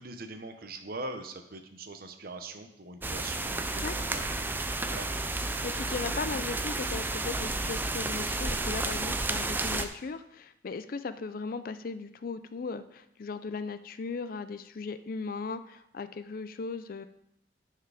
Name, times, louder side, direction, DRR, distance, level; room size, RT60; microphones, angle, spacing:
voice 1, 0.0-5.1, right 2 dB, 55° right, 6 dB, 0.9 m, -42 dB
sound 1, 3.0-9.9, right 2 dB, 10° right, 0.4 m, -32 dB
voice 2, 5.6-17.1, left 4 dB, 50° left, 12 dB, 0.4 m, -37 dB
9.9 x 4.7 x 4.9 m, 0.79 s
head